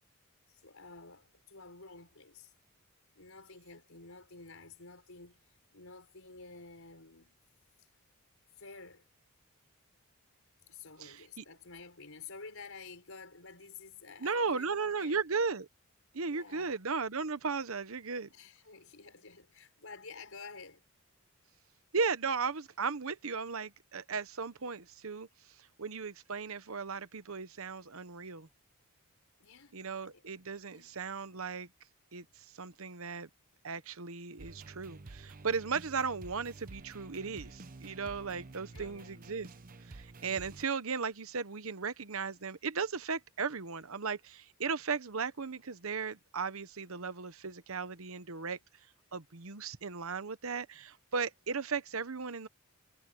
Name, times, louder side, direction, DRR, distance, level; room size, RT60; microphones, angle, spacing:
voice 1, 0.5-2.5 3.1-5.4 5.7-7.4 8.6-9.0 10.7-15.2 16.2-16.8 18.3-20.8 29.4-30.2 30.7-31.0 38.3-39.3, left 4 dB, 65° left, 5.7 m, -51 dB
voice 2, 11.0-11.4 14.2-15.7 16.1-18.3 21.9-25.3 25.8-28.5 29.7-31.7 32.1-33.3 33.6-39.5 39.8-48.6 49.1-52.5, right 5 dB, 65° right, 1.0 m, -36 dB
sound 1, 34.4-40.7, right 3 dB, 40° right, 0.7 m, -50 dB
head